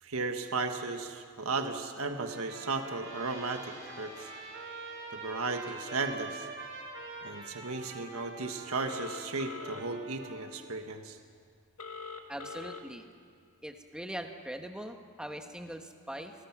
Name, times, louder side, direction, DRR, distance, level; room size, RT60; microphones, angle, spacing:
voice 1, 0.0-4.3 5.1-6.5 7.2-11.2, right 3 dB, 75° right, 5 dB, 1.5 m, -35 dB
Trumpet, 2.0-10.6, right 3 dB, 55° right, 5.7 m, -45 dB
sound 1, 2.9-9.1, equal, 15° left, 6.5 m, -55 dB
Telephone, 8.8-9.8 11.8-12.8, left 5 dB, 80° left, 2.0 m, -42 dB
voice 2, 12.3-13.1 13.6-16.3, right 1 dB, 5° right, 5 dB, 1.3 m, -41 dB
29.5 x 19.5 x 6.1 m, 2.1 s
head